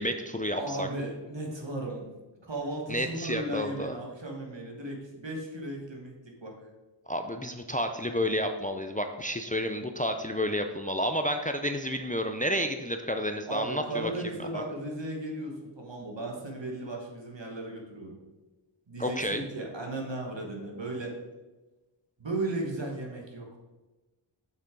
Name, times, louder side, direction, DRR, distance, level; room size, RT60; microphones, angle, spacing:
voice 1, 0.0-0.9 2.9-4.0 7.1-14.1 14.5-14.6 19.0-19.4, equal, 15° left, 6 dB, 0.5 m, -30 dB
voice 2, 0.6-2.1 2.4-6.1 6.4-6.7 13.5-18.2 18.9-21.1 22.2-23.6, right 2 dB, 60° right, 0 dB, 1.6 m, -36 dB
6.7 x 6.0 x 3.8 m, 1.1 s
wide cardioid pair, 45°, 48 cm